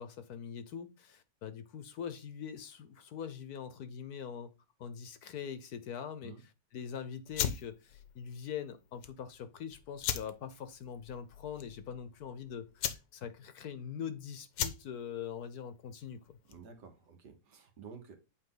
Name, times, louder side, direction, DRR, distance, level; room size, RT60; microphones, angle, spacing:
voice 1, 0.0-4.5 4.8-6.3 6.7-16.4, left 8 dB, 65° left, 1.2 m, -43 dB
sound 1, 7.3-16.8, left 9 dB, 85° left, 1.5 m, -40 dB
voice 2, 16.5-18.2, right 6 dB, 70° right, 1.9 m, -51 dB
8.3 x 4.3 x 3.8 m
omnidirectional pair, 1.9 m